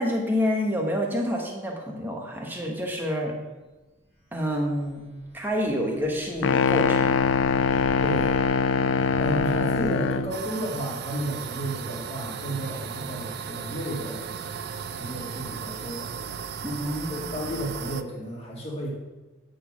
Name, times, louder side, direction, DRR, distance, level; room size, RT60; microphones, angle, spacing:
voice 1, 0.0-3.3 4.3-5.1 5.3-7.1 16.6-17.5, equal, 10° right, 0 dB, 1.1 m, -28 dB
sound 1, 4.1-10.4, equal, 50° left, 1.9 m, -43 dB
sound 2, 6.4-10.4, left 5 dB, 75° left, 0.4 m, -23 dB
voice 2, 8.0-8.4 9.2-14.4 14.9-16.1 17.1-18.9, right 1 dB, 30° left, -4 dB, 2.0 m, -32 dB
sound 3, 10.3-18.0, right 7 dB, 50° right, 0.4 m, -36 dB
9.2 x 3.9 x 6.1 m, 1.2 s
head